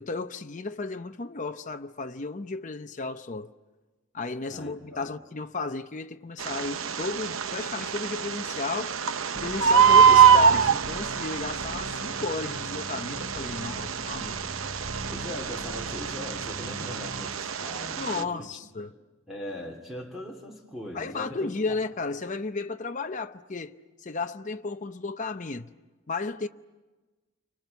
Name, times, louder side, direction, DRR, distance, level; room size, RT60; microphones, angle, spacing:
voice 1, 0.0-3.5 4.1-9.0 9.3-14.4 18.0-18.9 20.9-25.7 26.1-26.5, left 3 dB, 40° left, 0.7 m, -34 dB
voice 2, 4.5-5.1 15.1-18.9 19.3-21.5, left 1 dB, ahead, 2.8 m, -40 dB
Bird, 6.4-18.2, right 7 dB, 85° right, 0.8 m, -24 dB
sound 1, 9.3-17.4, right 1 dB, 30° right, 0.9 m, -41 dB
29.0 x 25.0 x 7.0 m
head